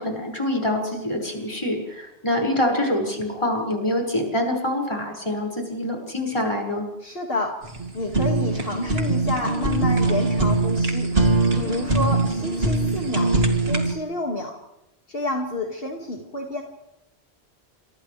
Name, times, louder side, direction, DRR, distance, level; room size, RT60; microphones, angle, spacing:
voice 1, 0.0-6.9, left 1 dB, 25° left, 0 dB, 6.1 m, -25 dB
voice 2, 7.0-7.5 7.9-11.1 11.6-13.3 13.6-14.5 15.1-16.6, left 1 dB, 65° left, 0 dB, 2.6 m, -29 dB
Fire, 7.6-13.9, right 2 dB, 70° right, 3.0 m, -22 dB
30.0 x 28.0 x 3.4 m, 0.91 s
omnidirectional pair, 1.1 m